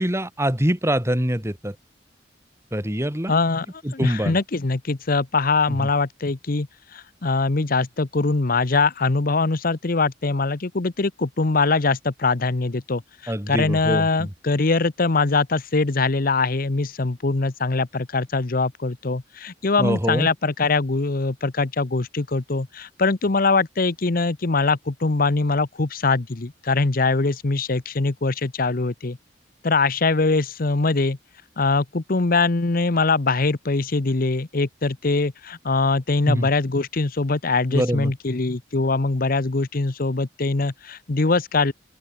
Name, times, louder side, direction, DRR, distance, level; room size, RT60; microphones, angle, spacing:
voice 1, 0.0-1.8 2.7-3.3 3.8-4.4 5.7-5.8 13.3-14.3 19.8-20.3 36.3-36.5 37.7-38.1, equal, 15° right, 3.5 m, -24 dB
voice 2, 3.3-3.7 3.9-29.2 29.6-31.2 31.6-41.7, left 3 dB, 50° left, 0.9 m, -22 dB
open air
head